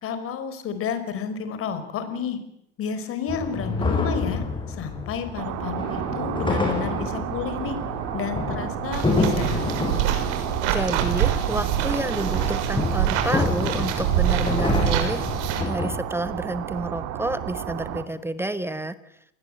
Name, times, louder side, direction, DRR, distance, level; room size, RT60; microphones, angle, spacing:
voice 1, 0.0-2.4 2.8-7.8 8.1-9.7, left 7 dB, 40° left, 10 dB, 5.1 m, -31 dB
sound 1, 3.3-16.0, left 3 dB, 15° left, 7.3 m, -28 dB
sound 2, 5.4-18.0, right 12 dB, 50° right, 2.9 m, -32 dB
sound 3, 8.9-15.6, right 11 dB, 70° right, 6.2 m, -26 dB
voice 2, 10.7-19.0, right 2 dB, 5° right, 13 dB, 1.2 m, -29 dB
27.0 x 21.0 x 9.0 m, 0.75 s
supercardioid pair, 130°, 35 cm